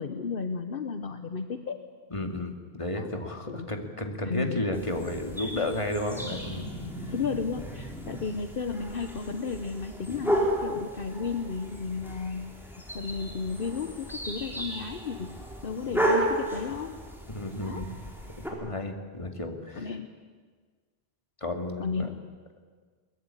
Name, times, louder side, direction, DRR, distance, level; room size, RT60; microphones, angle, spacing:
voice 1, 0.0-1.8 2.9-3.1 3.5-3.7 4.2-4.7 5.4-5.8 7.1-12.7 12.9-17.0 17.7-17.8 18.6-18.8 19.7-20.1 21.8-22.2, left 5 dB, 60° left, 8 dB, 1.2 m, -34 dB
voice 2, 2.1-6.7 7.0-7.1 17.3-18.0 18.5-19.9 21.4-22.1, left 1 dB, 30° left, 4 dB, 2.4 m, -33 dB
sound 1, 4.7-18.5, right 1 dB, ahead, 4.5 m, -33 dB
22.5 x 21.0 x 9.9 m, 1.5 s
omnidirectional pair, 1.1 m